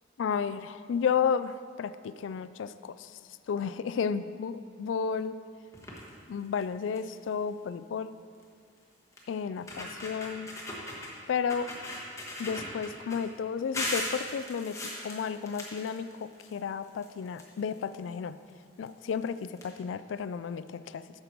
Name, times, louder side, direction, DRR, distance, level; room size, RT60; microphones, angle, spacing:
voice 1, 0.2-3.1 3.5-4.5 4.8-5.3 6.3-8.1 9.3-10.5 11.3-11.7 12.4-18.4 18.8-21.0, left 6 dB, 85° left, 14 dB, 0.3 m, -32 dB
sound 1, 5.7-6.1 6.6-6.7 7.0-7.2 8.4-8.5 9.2-9.3 9.6-11.1 11.5-13.2 13.7-16.5 16.8-17.9 18.8-18.9 19.2-19.3 19.6-19.7, left 1 dB, 15° left, 1.3 m, -38 dB
9.0 x 6.7 x 4.5 m, 2.1 s
head